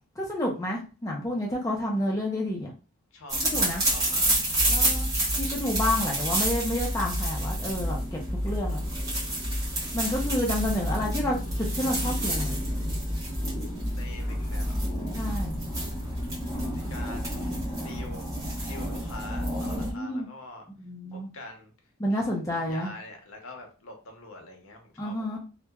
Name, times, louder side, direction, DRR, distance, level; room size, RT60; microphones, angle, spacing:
voice 1, 0.2-2.7 3.4-3.8 4.7-5.1 5.4-8.8 9.9-12.6 15.1-15.7 19.7-20.3 20.8-21.3 22.0-22.9 25.0-25.4, left 1 dB, 15° left, -2 dB, 0.4 m, -30 dB
voice 2, 3.1-4.3 4.9-5.3 10.4-11.0 13.9-14.9 16.7-18.3 18.6-20.7 21.3-21.7 22.1-25.4, left 2 dB, 75° left, 3 dB, 0.7 m, -45 dB
sound 1, 3.3-19.9, right 1 dB, 15° right, 0.9 m, -29 dB
2.8 x 2.1 x 2.2 m, 0.34 s
head